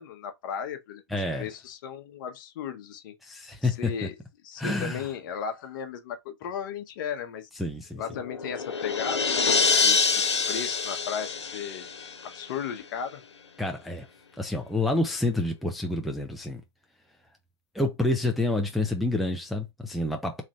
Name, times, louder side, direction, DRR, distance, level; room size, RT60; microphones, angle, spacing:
voice 1, 0.0-3.2 3.6-4.1 4.4-7.5 8.0-11.9 12.2-13.2, left 7 dB, 50° left, 0.8 m, -36 dB
voice 2, 1.1-1.5 3.2-4.1 4.6-5.1 7.6-8.0 13.6-14.1 14.4-16.6 17.7-20.4, left 2 dB, ahead, 0.4 m, -28 dB
sound 1, 8.0-12.6, left 4 dB, 85° left, 0.7 m, -26 dB
3.3 x 2.5 x 4.1 m
hypercardioid pair, 120°, 14 cm